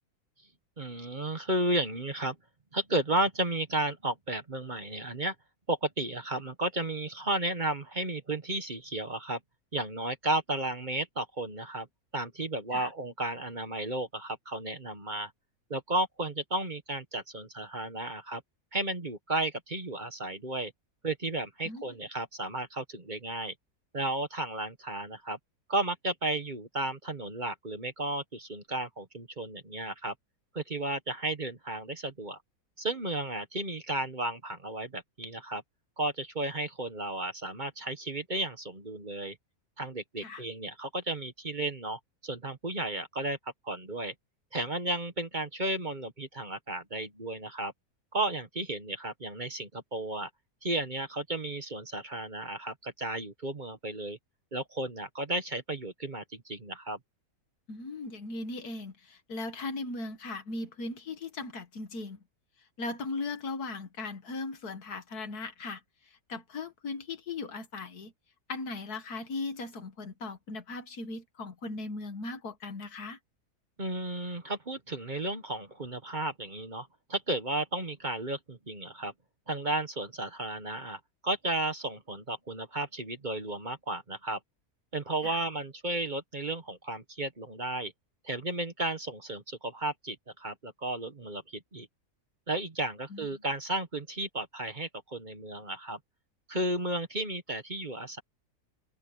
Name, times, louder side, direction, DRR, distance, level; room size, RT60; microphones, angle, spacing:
voice 1, 0.8-2.3 2.7-5.3 5.7-9.4 9.7-11.9 12.1-15.3 15.7-18.4 18.7-20.7 21.0-23.5 23.9-25.4 25.7-30.1 30.5-32.4 32.8-35.6 36.0-39.4 39.8-43.4 43.6-44.1 44.5-47.7 48.1-50.3 50.6-54.2 54.5-57.0 73.8-79.1 79.5-84.4 84.9-87.9 88.2-91.9 92.5-96.0 96.5-98.2, right 2 dB, 30° right, 1.4 m, -33 dB
voice 2, 57.7-62.2 62.8-65.8 66.3-68.1 68.5-73.2 85.2-85.4 93.1-93.3, left 3 dB, 75° left, 2.2 m, -38 dB
omnidirectional pair, 1.7 m